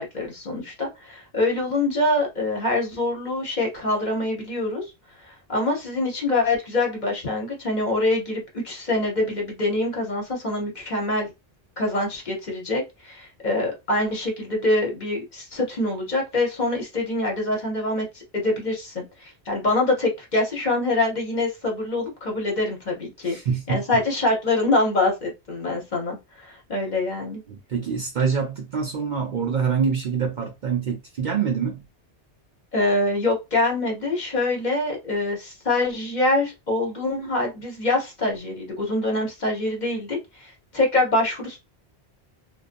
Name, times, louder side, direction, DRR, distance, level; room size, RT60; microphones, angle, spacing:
voice 1, 0.0-4.9 5.3-11.3 11.8-23.3 23.7-27.4 32.7-41.6, left 2 dB, 45° left, 0.9 m, -25 dB
voice 2, 23.2-24.0 27.5-31.8, right 6 dB, 55° right, 0.6 m, -25 dB
2.5 x 2.3 x 2.5 m
omnidirectional pair, 1.1 m